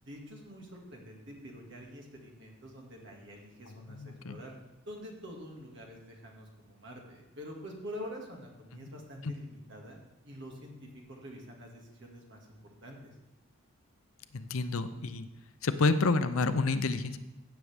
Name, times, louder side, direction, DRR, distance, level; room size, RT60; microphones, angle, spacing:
voice 1, 0.0-4.5 4.9-10.0 10.2-13.2, equal, 55° right, 0 dB, 2.0 m, -46 dB
voice 2, 3.9-4.4 9.2-9.3 14.3-15.3 15.6-17.2, left 3 dB, 70° left, 11 dB, 0.6 m, -29 dB
16.0 x 7.1 x 3.5 m, 0.96 s
head